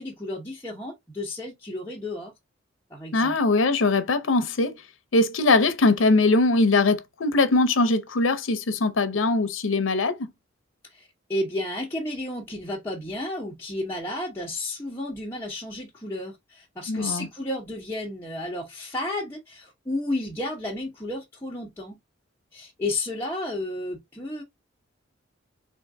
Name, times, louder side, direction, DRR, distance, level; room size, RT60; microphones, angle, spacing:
voice 1, 0.0-2.3 2.9-3.4 10.9-22.0 22.5-24.4, left 1 dB, 15° left, 0.9 m, -32 dB
voice 2, 3.1-4.8 5.1-10.3 16.9-17.3, left 3 dB, 85° left, 0.7 m, -21 dB
3.7 x 2.5 x 3.5 m
head